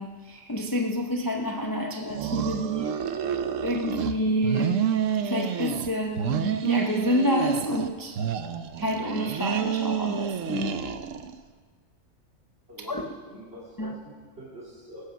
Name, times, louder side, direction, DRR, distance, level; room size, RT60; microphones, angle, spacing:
voice 1, 0.0-2.9 3.6-4.8 5.2-8.3 8.8-10.9 12.9-13.0 13.8-13.9, equal, 20° left, 1 dB, 0.7 m, -28 dB
sound 1, 2.1-4.1 4.4-5.9 6.2-7.9 8.2-11.4, right 8 dB, 70° right, 1.1 m, -29 dB
voice 2, 13.2-15.0, equal, 50° right, -8 dB, 2.9 m, -45 dB
19.5 x 8.6 x 6.1 m, 1.5 s
omnidirectional pair, 1.4 m